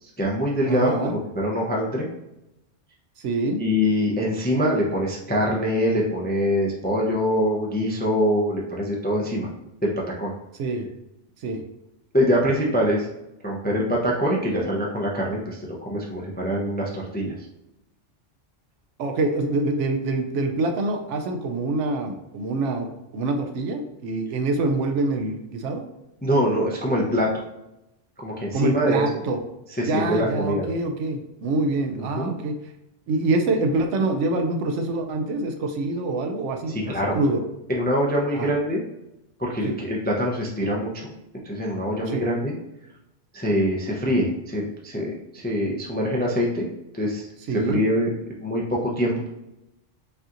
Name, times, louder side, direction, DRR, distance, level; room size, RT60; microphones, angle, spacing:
voice 1, 0.0-2.1 3.6-9.5 9.8-9.9 10.2-10.3 12.1-13.1 13.4-17.3 26.2-27.3 28.2-29.0 29.8-30.7 32.2-32.3 36.7-37.2 37.7-38.8 39.4-40.9 41.4-42.5 43.3-46.6 46.9-48.1 48.4-49.3, equal, 15° left, -2 dB, 0.3 m, -24 dB
voice 2, 0.7-1.1 3.2-3.6 10.6-10.9 11.4-11.6 19.0-25.8 28.5-29.4 29.9-32.6 33.1-37.4 38.3-38.5 39.6-39.8 42.1-42.2 47.5-47.8, right 2 dB, 75° right, 5 dB, 0.9 m, -25 dB
5.5 x 2.8 x 2.5 m, 0.88 s
omnidirectional pair, 1.3 m